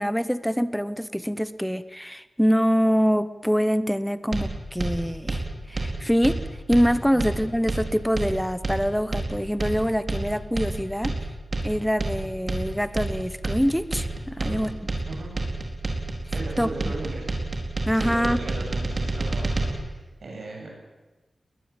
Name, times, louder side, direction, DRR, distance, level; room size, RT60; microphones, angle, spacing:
voice 1, 0.0-6.4 6.7-11.1 11.6-14.7 16.6-16.9 17.9-18.4, equal, ahead, 14 dB, 0.8 m, -25 dB
sound 1, 4.3-19.7, right 2 dB, 40° right, 4.5 m, -29 dB
voice 2, 16.3-17.3 17.9-20.7, right 2 dB, 60° right, -1 dB, 7.8 m, -37 dB
21.0 x 20.5 x 8.9 m, 1.2 s
wide cardioid pair, 150°, 0 cm